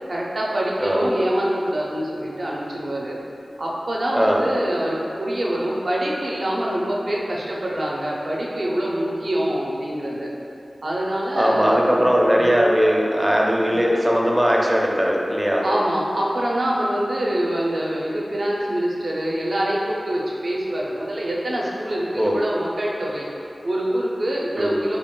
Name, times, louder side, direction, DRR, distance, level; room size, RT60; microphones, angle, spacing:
voice 1, 0.1-3.2 3.6-10.3 10.8-12.5 15.6-25.0, right 1 dB, 65° right, -4 dB, 0.5 m, -25 dB
voice 2, 11.3-15.6 22.1-22.4 24.6-24.8, equal, 15° right, -2 dB, 0.4 m, -19 dB
3.4 x 2.3 x 3.6 m, 2.6 s
wide cardioid pair, 75°, 0 cm